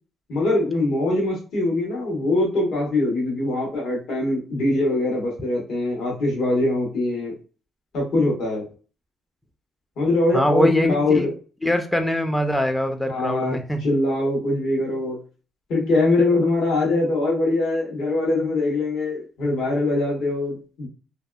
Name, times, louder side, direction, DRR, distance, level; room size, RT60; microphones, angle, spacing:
voice 1, 0.3-7.3 7.9-8.6 10.0-11.3 13.1-15.2 15.7-20.9, left 2 dB, 75° left, -4 dB, 1.2 m, -22 dB
voice 2, 10.3-11.3 11.6-13.8 19.5-19.6, left 1 dB, 5° left, 7 dB, 0.4 m, -22 dB
2.6 x 2.3 x 2.2 m, 0.36 s
cardioid pair, 90°, 0 cm